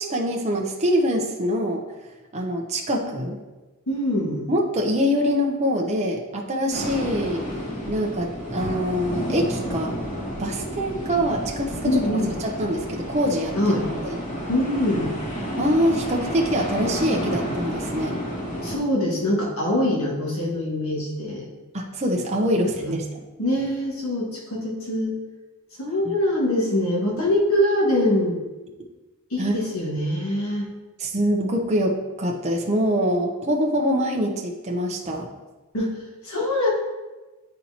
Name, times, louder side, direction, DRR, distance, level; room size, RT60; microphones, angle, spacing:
voice 1, 0.0-1.8 2.3-3.4 4.5-7.4 7.9-10.0 10.4-13.5 14.0-14.2 15.6-18.2 21.7-23.2 26.0-26.1 29.4-29.6 31.0-35.3, equal, 30° right, 0 dB, 0.7 m, -24 dB
voice 2, 3.9-4.5 11.8-12.3 13.6-13.9 14.5-15.2 18.6-21.5 22.6-23.0 23.4-25.2 25.8-28.4 29.3-30.7 35.7-36.7, left 1 dB, 65° left, -3 dB, 1.7 m, -24 dB
sound 1, 6.7-18.8, equal, 35° left, 2.1 m, -30 dB
10.0 x 4.2 x 2.9 m, 1.2 s
head